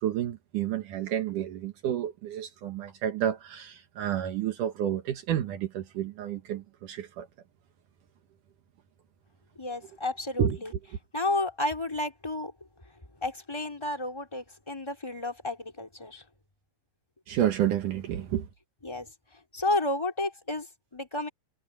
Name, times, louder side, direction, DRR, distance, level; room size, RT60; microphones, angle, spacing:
voice 1, 0.0-7.3 10.4-10.6 17.3-18.5, right 10 dB, 80° right, 1.8 m, -30 dB
voice 2, 9.6-10.7 11.1-12.5 13.2-16.2 18.8-19.1 19.5-20.7 20.9-21.3, left 2 dB, 5° left, 3.8 m, -31 dB
omnidirectional pair, 5.9 m